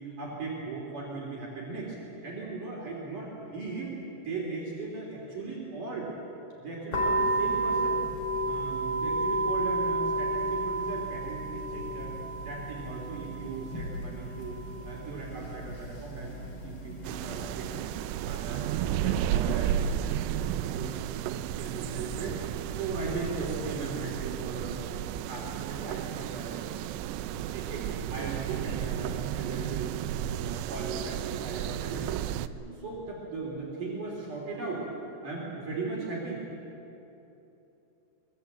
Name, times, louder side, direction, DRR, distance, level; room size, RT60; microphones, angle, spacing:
voice 1, 0.0-2.0 2.2-3.9 4.2-6.1 6.6-8.0 8.4-14.5 14.8-16.4 16.6-17.9 18.2-21.3 21.6-24.8 25.1-29.9 30.2-32.2 32.5-34.8 35.2-36.4, right 3 dB, 50° right, -3 dB, 4.5 m, -38 dB
sound 1, 6.9-17.5, right 2 dB, 35° left, 3.8 m, -32 dB
sound 2, 17.0-32.5, right 10 dB, 85° right, 2.9 m, -33 dB
24.5 x 21.5 x 8.1 m, 3.0 s
omnidirectional pair, 5.0 m